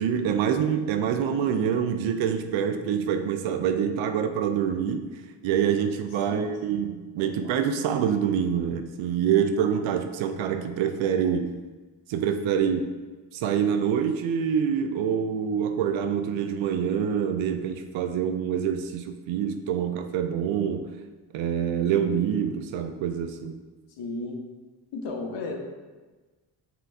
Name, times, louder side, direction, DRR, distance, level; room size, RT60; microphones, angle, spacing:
voice 1, 0.0-5.1 5.4-11.5 12.1-12.9 13.3-20.9 21.3-23.6, right 8 dB, 75° right, 8 dB, 0.5 m, -26 dB
voice 2, 24.0-24.4 24.9-25.6, left 3 dB, 65° left, 2 dB, 1.0 m, -33 dB
5.4 x 3.7 x 2.6 m, 1.3 s
supercardioid pair, 55°, 47 cm